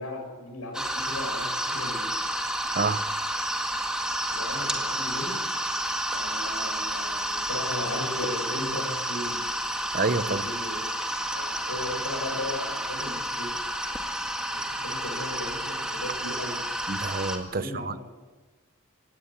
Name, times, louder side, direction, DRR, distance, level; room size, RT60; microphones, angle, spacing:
voice 1, 0.0-2.0 4.3-5.3 6.1-9.4 10.2-10.8 11.3-13.5 13.8-14.0 14.5-16.6 17.5-18.0, left 1 dB, 90° left, 2 dB, 7.3 m, -36 dB
sound 1, 0.7-17.4, right 1 dB, 5° right, 2.0 m, -30 dB
voice 2, 9.9-10.4 16.9-18.0, right 3 dB, 40° right, 14 dB, 0.7 m, -28 dB
19.5 x 17.0 x 8.8 m, 1.3 s
head